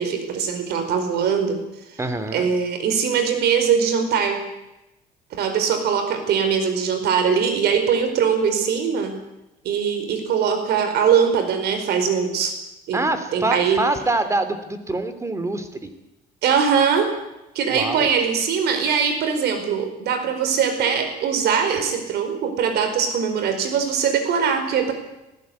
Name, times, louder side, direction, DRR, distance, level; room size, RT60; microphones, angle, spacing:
voice 1, 0.0-1.6 2.3-4.4 5.3-9.1 9.6-12.5 12.9-13.0 13.3-13.8 16.4-17.1 17.5-24.9, right 7 dB, 75° right, 7 dB, 4.8 m, -21 dB
voice 2, 2.0-2.5 12.9-15.9 17.7-18.1, right 2 dB, 15° right, 10 dB, 2.8 m, -25 dB
20.0 x 15.0 x 9.6 m, 0.94 s
cardioid pair, 110°, 17 cm